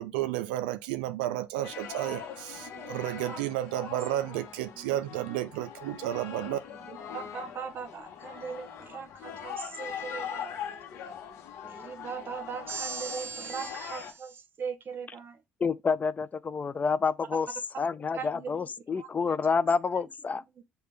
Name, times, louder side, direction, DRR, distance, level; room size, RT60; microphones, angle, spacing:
voice 1, 0.0-6.6, right 14 dB, 85° right, 0.3 m, -32 dB
sound 1, 1.6-14.1, left 8 dB, 70° left, 0.8 m, -41 dB
voice 2, 2.3-3.0 3.3-3.4 3.8-4.0 4.6-5.0 6.7-10.5 11.6-15.4 18.1-19.4 20.0-20.1 20.6-20.7, right 6 dB, 50° right, 0.9 m, -40 dB
voice 3, 15.6-17.5 17.8-20.4, left 5 dB, 35° left, 0.4 m, -28 dB
6.5 x 2.3 x 3.2 m
hypercardioid pair, 60°, 5 cm